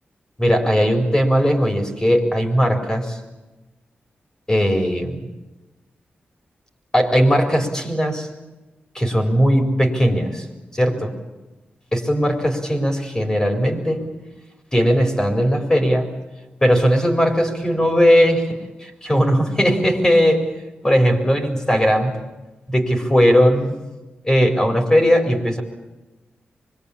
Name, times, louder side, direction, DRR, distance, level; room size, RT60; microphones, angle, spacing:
voice 1, 0.4-3.2 4.5-5.3 6.9-8.3 8.9-10.5 10.7-11.1 11.9-14.0 14.7-16.1 16.6-20.4 20.8-22.1 22.7-23.8 24.2-25.6, equal, 20° left, 3 dB, 4.4 m, -18 dB
25.5 x 23.0 x 8.7 m, 1.1 s
cardioid pair, 80°, 4 cm